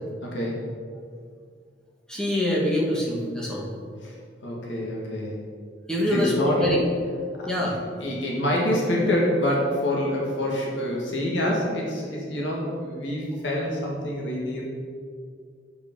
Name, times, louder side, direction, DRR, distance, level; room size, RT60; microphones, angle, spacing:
voice 1, 0.2-0.6 4.0-5.5 6.1-6.7 7.4-7.7 8.0-14.6, left 1 dB, 80° left, -3 dB, 1.8 m, -26 dB
voice 2, 2.1-3.7 5.9-6.8 7.5-7.7, left 1 dB, 5° left, -3 dB, 1.4 m, -24 dB
8.0 x 5.3 x 5.3 m, 2.1 s
head